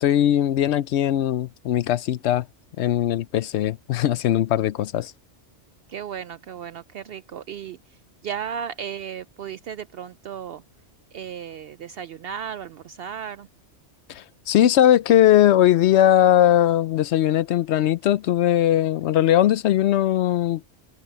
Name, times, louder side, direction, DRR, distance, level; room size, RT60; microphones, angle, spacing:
voice 1, 0.0-2.5 2.8-5.1 14.1-20.6, left 12 dB, 75° left, 0.8 m, -19 dB
voice 2, 5.9-8.0 8.2-10.6 11.1-13.5, right 8 dB, 65° right, 0.7 m, -35 dB
omnidirectional pair, 1.2 m